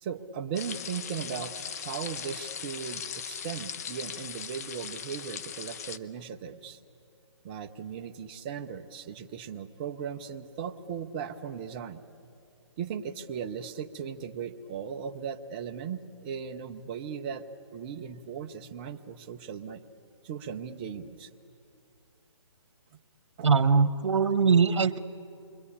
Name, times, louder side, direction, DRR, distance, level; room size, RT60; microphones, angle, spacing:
voice 1, 0.0-6.8 7.4-12.0 12.8-17.4 17.7-19.8 20.2-21.3 23.4-23.6, right 7 dB, 20° right, 5 dB, 0.7 m, -37 dB
sound 1, 0.6-6.0, left 7 dB, 30° left, 0.7 m, -39 dB
voice 2, 23.4-25.0, right 5 dB, 80° right, 11 dB, 1.2 m, -22 dB
27.5 x 23.5 x 8.6 m, 2.6 s
hypercardioid pair, 165°, 15 cm